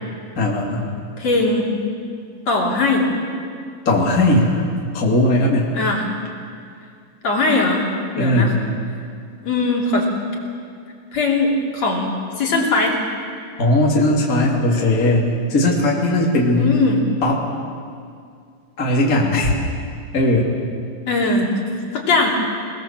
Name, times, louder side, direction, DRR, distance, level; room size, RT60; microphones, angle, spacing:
voice 1, 0.4-0.9 3.8-4.6 4.9-5.7 8.2-8.5 13.6-16.7 17.2-17.4 18.8-19.5 20.1-20.5, left 1 dB, 25° left, -3 dB, 2.4 m, -18 dB
voice 2, 1.2-1.7 2.5-3.1 5.7-6.1 7.2-7.9 8.1-8.5 9.4-10.1 11.1-13.0 16.5-17.0 21.1-21.5 21.9-22.3, left 3 dB, 40° left, -2 dB, 3.8 m, -19 dB
28.0 x 20.5 x 7.5 m, 2.3 s
omnidirectional pair, 4.9 m